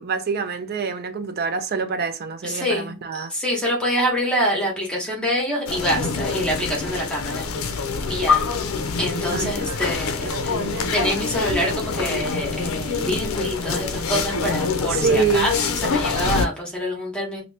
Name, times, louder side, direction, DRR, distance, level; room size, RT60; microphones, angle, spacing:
voice 1, 0.0-3.3 9.3-9.8 10.3-10.9 14.9-15.5, right 5 dB, 50° right, 0.5 m, -26 dB
voice 2, 2.4-7.5 8.1-8.4 9.0-10.6 10.9-15.5 15.8-17.4, equal, 5° left, 1.0 m, -26 dB
sound 1, 5.7-16.5, left 4 dB, 75° left, 0.5 m, -25 dB
2.8 x 2.6 x 3.2 m
head